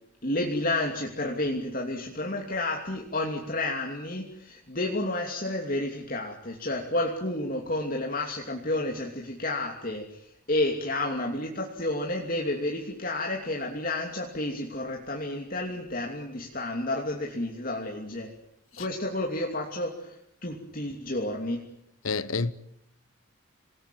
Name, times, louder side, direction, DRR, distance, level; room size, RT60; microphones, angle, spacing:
voice 1, 0.2-18.3 18.8-21.7, left 1 dB, 40° left, 2.9 m, -31 dB
voice 2, 22.0-22.5, left 4 dB, 80° left, 1.2 m, -28 dB
27.5 x 19.5 x 9.2 m
head